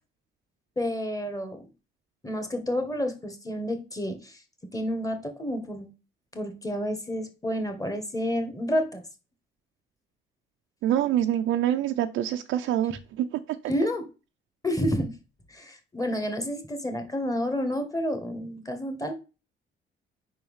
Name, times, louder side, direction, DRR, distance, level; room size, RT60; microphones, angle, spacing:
voice 1, 0.7-1.6 2.2-4.4 4.7-5.9 6.3-9.0 13.7-14.0 14.6-15.2 15.5-19.1, equal, 15° left, 1.8 m, -30 dB
voice 2, 10.8-13.7, right 11 dB, 85° right, 0.5 m, -26 dB
5.4 x 4.4 x 5.5 m
cardioid pair, 90°, 20 cm